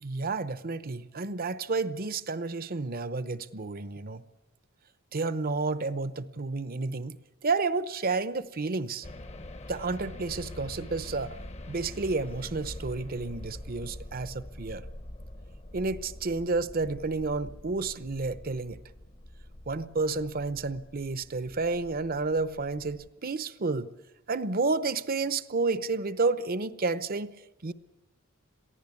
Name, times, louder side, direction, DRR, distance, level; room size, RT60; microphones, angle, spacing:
voice 1, 0.0-4.2 5.1-7.2 7.4-9.1 9.7-11.3 11.7-14.9 15.7-18.8 19.7-23.9 24.3-27.7, right 3 dB, 45° right, 0.8 m, -31 dB
sound 1, 9.0-23.1, left 1 dB, 30° left, 1.1 m, -45 dB
23.0 x 15.0 x 8.5 m
head